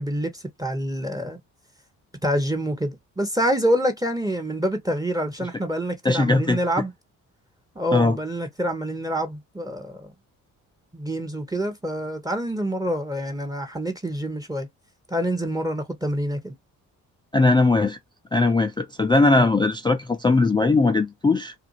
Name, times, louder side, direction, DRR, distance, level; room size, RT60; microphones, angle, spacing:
voice 1, 0.0-1.4 2.2-6.9 7.7-10.1 10.9-14.7 15.1-16.5, equal, 10° right, 0.9 m, -26 dB
voice 2, 6.0-6.6 7.9-8.2 17.3-18.0 18.3-21.5, left 3 dB, 15° left, 0.3 m, -19 dB
2.5 x 2.2 x 2.8 m
hypercardioid pair, 50°, 40 cm